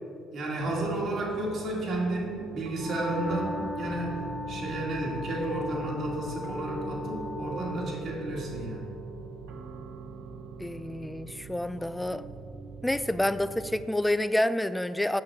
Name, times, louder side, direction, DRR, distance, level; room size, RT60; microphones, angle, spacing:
voice 1, 0.3-4.2 4.5-8.9, right 1 dB, 60° right, -2 dB, 2.5 m, -32 dB
sound 1, 0.6-13.8, right 4 dB, 80° right, 1.0 m, -42 dB
Wind instrument woodwind instrument, 2.7-8.1, left 2 dB, 35° left, 1.2 m, -37 dB
voice 2, 10.6-12.2 12.8-15.2, left 1 dB, 10° left, 14 dB, 0.4 m, -28 dB
6.6 x 6.3 x 7.1 m, 2.4 s
supercardioid pair, 75°, 0 cm